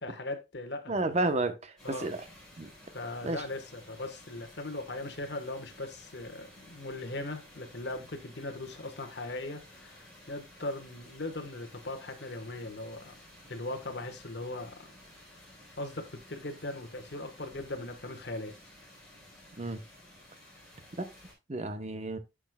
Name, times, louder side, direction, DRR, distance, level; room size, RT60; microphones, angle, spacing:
voice 1, 0.0-0.9 1.8-2.1 2.9-13.1 13.5-14.9 15.8-18.5, left 2 dB, 55° left, 1.3 m, -39 dB
voice 2, 0.9-2.2 2.6-2.7 3.2-3.4 19.6-19.8 21.0-21.1 21.5-22.2, right 2 dB, 35° right, 0.8 m, -31 dB
sound 1, 1.8-21.3, left 1 dB, ahead, 3.7 m, -54 dB
10.0 x 6.3 x 2.2 m
head